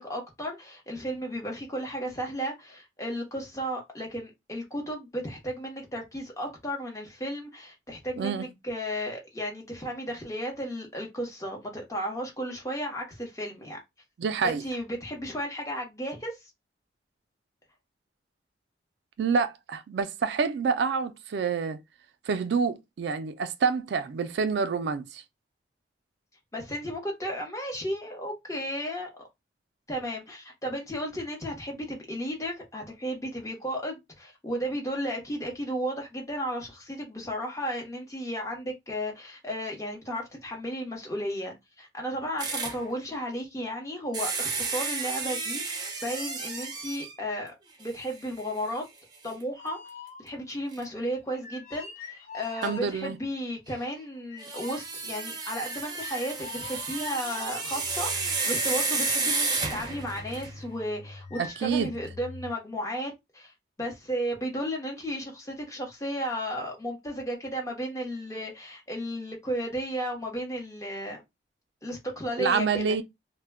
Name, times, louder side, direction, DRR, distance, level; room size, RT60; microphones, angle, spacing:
voice 1, 0.0-13.8 14.4-16.4 26.5-29.1 29.9-47.5 47.8-48.8 49.2-49.8 50.2-63.5 63.8-71.2 71.8-73.0, equal, 20° left, 0.8 m, -34 dB
voice 2, 8.2-8.5 14.2-14.6 19.2-21.8 22.3-25.2 52.6-53.2 61.4-61.9 72.4-73.0, right 5 dB, 70° right, 0.3 m, -27 dB
sound 1, 42.4-42.8 44.1-47.2 47.8-47.9 48.4-48.5 50.7-50.8 52.6-52.7 54.4-60.6, right 4 dB, 25° right, 0.5 m, -32 dB
sound 2, 49.5-50.6 51.3-53.3 54.3-62.5, left 6 dB, 40° left, 0.4 m, -42 dB
2.1 x 2.1 x 3.4 m
head